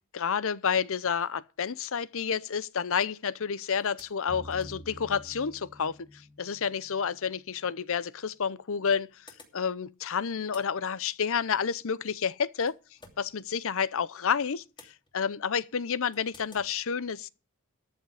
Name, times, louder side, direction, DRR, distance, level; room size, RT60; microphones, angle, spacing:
voice 1, 0.1-9.1 9.5-12.8 13.2-17.3, left 6 dB, 65° left, 0.7 m, -30 dB
sound 1, 3.8-5.6 7.7-7.8 8.7-10.0 10.2-14.0 14.3-15.5 16.1-16.8, left 3 dB, 20° left, 2.8 m, -57 dB
sound 2, 4.3-7.4, equal, 85° left, 5.0 m, -48 dB
13.5 x 8.3 x 4.8 m
head